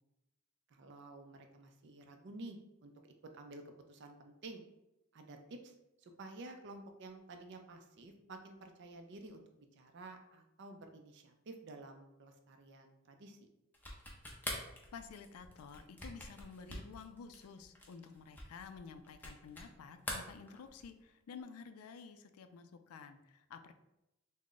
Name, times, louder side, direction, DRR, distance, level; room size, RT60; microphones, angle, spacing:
voice 1, 0.7-2.9 3.3-4.6 5.1-13.5, right 2 dB, 50° right, 5 dB, 0.4 m, -52 dB
sound 1, 13.7-19.7 20.0-21.0, left 1 dB, 10° left, 0.5 m, -45 dB
voice 2, 14.9-23.7, left 5 dB, 80° left, 9 dB, 0.3 m, -51 dB
3.6 x 2.1 x 3.7 m, 0.90 s
head